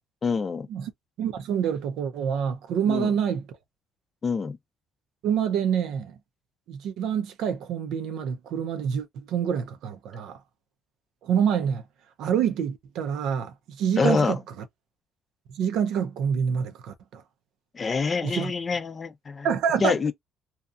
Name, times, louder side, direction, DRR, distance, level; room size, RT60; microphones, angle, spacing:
voice 1, 0.2-0.7 2.9-3.1 4.2-4.6 14.0-14.4 17.7-19.5 19.8-20.1, left 5 dB, 30° left, 0.4 m, -26 dB
voice 2, 1.2-3.5 5.2-6.2 6.7-10.4 11.2-11.8 12.2-14.6 15.5-17.2 18.2-18.5 19.4-20.0, right 8 dB, 75° right, 0.5 m, -27 dB
2.7 x 2.3 x 2.4 m
cardioid pair, 105°, 0 cm